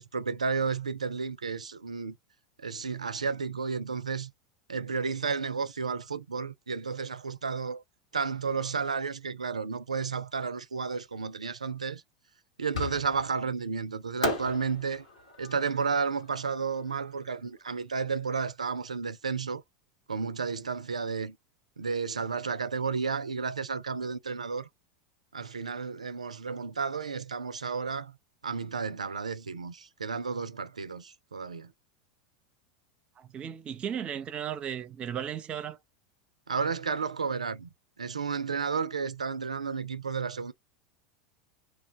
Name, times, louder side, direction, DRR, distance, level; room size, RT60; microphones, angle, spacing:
voice 1, 0.0-2.2 2.6-4.3 4.7-7.8 8.1-12.0 12.6-15.1 15.4-19.6 20.1-21.4 21.8-24.7 25.3-28.1 28.4-31.7 36.5-37.7 38.0-40.5, right 5 dB, 80° right, 0.4 m, -32 dB
Fireworks, 12.7-13.4 14.2-17.3, left 2 dB, 70° left, 1.2 m, -36 dB
voice 2, 33.2-35.8, right 9 dB, 30° right, 0.6 m, -35 dB
2.3 x 2.2 x 3.7 m
figure-of-eight pair, 80°, 4 cm